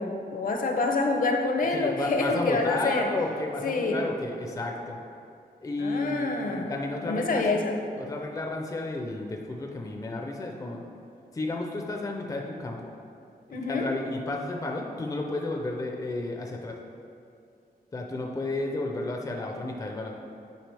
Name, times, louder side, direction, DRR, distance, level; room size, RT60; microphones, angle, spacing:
voice 1, 0.0-3.1 3.6-4.0 5.8-6.7 7.0-7.8 13.5-13.8, left 3 dB, 60° left, 3 dB, 0.7 m, -27 dB
voice 2, 1.7-5.0 5.6-7.4 8.0-10.8 11.3-12.9 13.7-16.8 17.9-20.1, left 2 dB, 20° left, 1 dB, 0.5 m, -32 dB
9.1 x 5.0 x 3.4 m, 2.6 s
wide cardioid pair, 160°, 16 cm